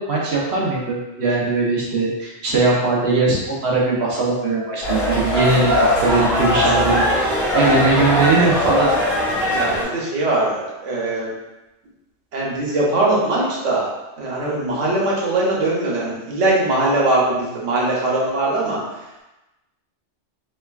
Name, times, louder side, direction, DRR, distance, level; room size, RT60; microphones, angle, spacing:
voice 1, 0.0-8.9, right 3 dB, 65° right, -4 dB, 1.0 m, -20 dB
sound 1, 4.8-9.8, left 1 dB, 40° left, 1.6 m, -20 dB
voice 2, 6.5-6.9 9.5-11.3 12.3-13.9 14.2-18.8, right 2 dB, 85° right, -4 dB, 1.2 m, -21 dB
3.5 x 3.2 x 2.3 m, 1.0 s
omnidirectional pair, 1.2 m